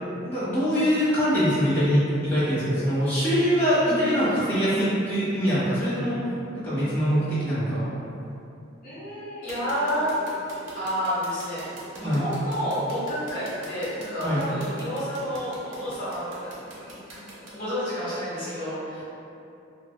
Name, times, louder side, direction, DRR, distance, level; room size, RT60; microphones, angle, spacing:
voice 1, 0.2-7.9 12.0-12.2 14.2-14.4, equal, 10° left, -14 dB, 1.2 m, -23 dB
voice 2, 8.8-10.1 10.7-11.7 12.0-19.0, equal, 45° left, -12 dB, 1.0 m, -30 dB
sound 1, 9.5-17.5, right 2 dB, 70° right, 0.7 m, -43 dB
3.4 x 2.6 x 2.2 m, 2.7 s
head